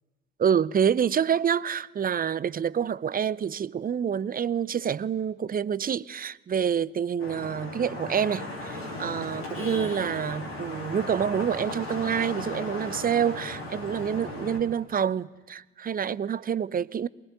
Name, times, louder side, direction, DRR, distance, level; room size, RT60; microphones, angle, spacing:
voice 1, 0.4-17.1, right 8 dB, 30° right, 0.7 m, -27 dB
Vehicle horn car horn honking / Traffic noise roadway noise, 7.2-14.6, left 2 dB, 80° left, 4.1 m, -36 dB
22.5 x 22.5 x 9.5 m
figure-of-eight pair, 45°, 30 cm